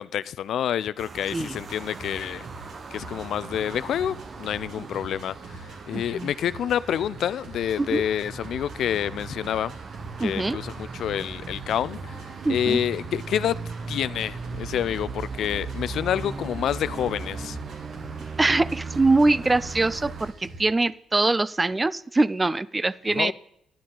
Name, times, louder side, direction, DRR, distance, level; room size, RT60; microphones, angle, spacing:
voice 1, 0.0-2.4 2.9-9.7 10.2-12.2 12.5-13.6 13.9-17.6 23.2-23.3, left 10 dB, 70° left, 0.3 m, -28 dB
sound 1, 1.0-20.3, right 4 dB, 40° right, 0.8 m, -38 dB
sound 2, 1.6-20.7, right 3 dB, 70° right, 2.6 m, -44 dB
voice 2, 5.9-6.3 7.8-8.0 10.2-10.6 12.4-12.8 18.4-23.3, right 2 dB, 20° right, 0.3 m, -23 dB
11.0 x 10.5 x 3.8 m
cardioid pair, 90°, 0 cm